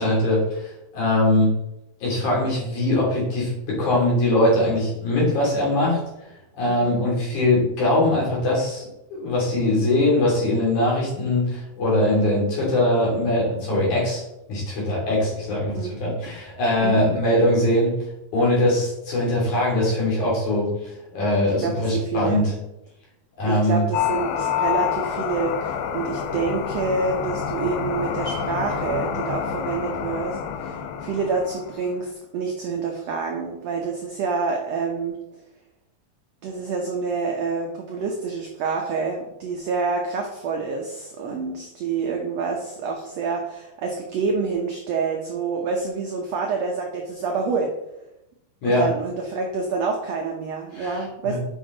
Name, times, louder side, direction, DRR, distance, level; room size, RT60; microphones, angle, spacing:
voice 1, 0.0-1.5 2.0-6.0 6.6-14.2 14.5-17.9 18.3-22.4 23.4-23.8 48.6-48.9 50.7-51.4, left 1 dB, 60° left, -5 dB, 4.2 m, -21 dB
voice 2, 6.7-7.0 15.7-15.9 16.8-17.1 21.6-22.4 23.4-35.2 36.4-47.7 48.6-51.4, right 4 dB, 75° right, 1 dB, 1.5 m, -27 dB
sound 1, 23.9-31.9, left 8 dB, 85° left, 2.4 m, -28 dB
8.3 x 5.5 x 3.9 m, 0.86 s
omnidirectional pair, 4.0 m